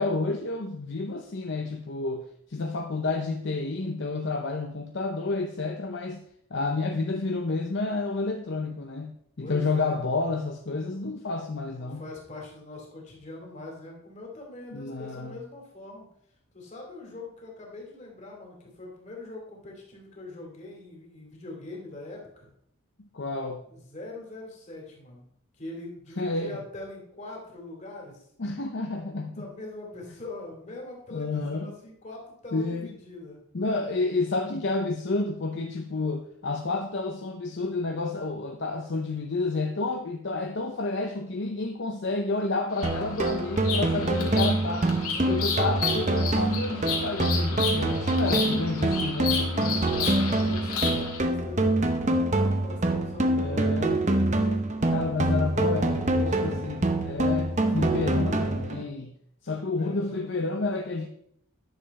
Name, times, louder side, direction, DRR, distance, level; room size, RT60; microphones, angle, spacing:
voice 1, 0.0-2.2 2.5-6.2 6.5-12.1 14.7-15.4 23.0-23.6 26.2-26.6 28.4-29.5 31.1-31.7 32.5-32.9 33.5-44.8 45.2-49.8 53.3-54.0 54.9-59.1 59.4-61.1, left 3 dB, 55° left, 4 dB, 0.6 m, -30 dB
voice 2, 6.5-7.0 9.4-10.0 11.7-16.1 16.5-22.5 23.7-28.3 29.4-33.5 43.9-44.9 45.1-46.4 49.6-54.1 54.7-55.1 55.5-56.7 59.5-60.4, left 2 dB, 35° left, -1 dB, 2.5 m, -43 dB
Bird vocalization bird call bird song, 42.7-51.2, left 5 dB, 85° left, 2.1 m, -32 dB
sound 1, 42.8-58.8, right 1 dB, 35° right, 0.8 m, -25 dB
10.5 x 6.9 x 4.1 m, 0.70 s
head